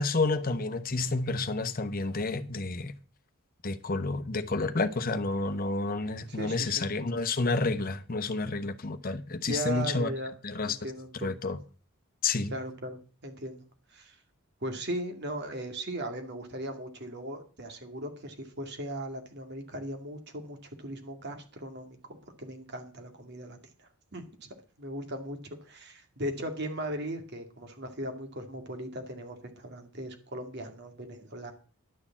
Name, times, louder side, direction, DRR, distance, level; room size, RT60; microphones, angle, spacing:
voice 1, 0.0-2.9 3.6-10.1 10.4-10.8 11.2-11.6 12.2-12.5, left 3 dB, 40° left, 1.0 m, -30 dB
voice 2, 6.3-6.9 9.4-10.3 10.7-11.4 12.5-13.6 13.9-14.2 14.6-24.5 24.8-31.5, right 1 dB, 50° right, 2.3 m, -38 dB
11.5 x 6.7 x 7.3 m
head